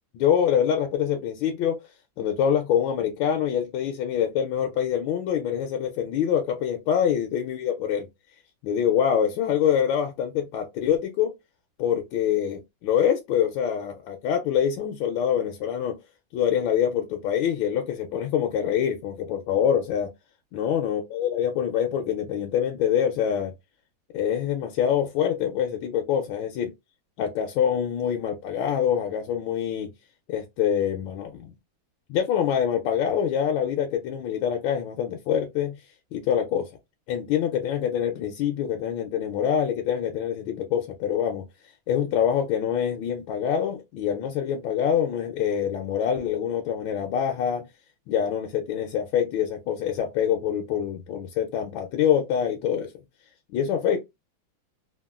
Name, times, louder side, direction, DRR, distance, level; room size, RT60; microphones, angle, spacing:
voice 1, 0.1-1.8 2.2-8.1 8.6-11.3 11.8-16.0 16.3-20.1 20.5-23.5 24.1-26.7 27.2-29.9 30.3-31.5 32.1-35.8 36.1-36.7 37.1-41.4 41.9-47.7 48.1-52.9 53.5-54.0, left 9 dB, 90° left, 1.4 m, -25 dB
3.5 x 2.2 x 2.3 m
omnidirectional pair, 2.1 m